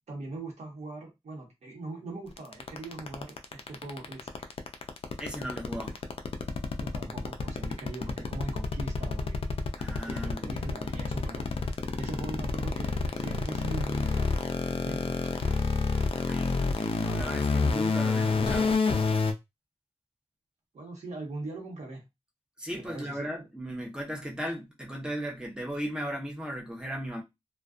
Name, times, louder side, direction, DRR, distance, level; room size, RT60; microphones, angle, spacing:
voice 1, 0.1-4.5 6.8-9.4 10.1-11.5 12.0-14.4 14.7-15.3 20.7-22.0 22.7-23.3, right 2 dB, 75° right, 1.0 m, -41 dB
sound 1, 2.4-19.3, left 4 dB, 55° left, 0.4 m, -28 dB
voice 2, 5.2-6.0 9.8-10.8 16.1-18.7 22.6-27.2, equal, 5° right, 0.6 m, -37 dB
2.4 x 2.2 x 2.4 m
wide cardioid pair, 130°, 12 cm